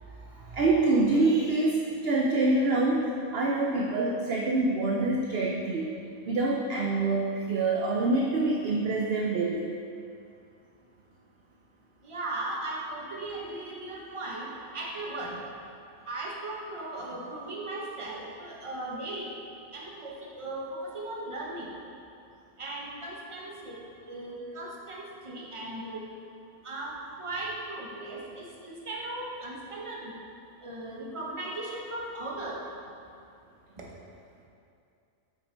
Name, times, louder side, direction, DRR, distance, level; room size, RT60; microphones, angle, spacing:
voice 1, 0.1-5.9 6.2-9.7, right 2 dB, 60° right, -1 dB, 0.7 m, -26 dB
voice 2, 12.0-15.4 16.1-19.3 19.7-21.7 22.6-23.7 24.1-26.1 26.6-30.2 30.6-32.6, right 2 dB, 25° right, -3 dB, 0.9 m, -37 dB
8.1 x 6.0 x 3.3 m, 2.5 s
omnidirectional pair, 1.5 m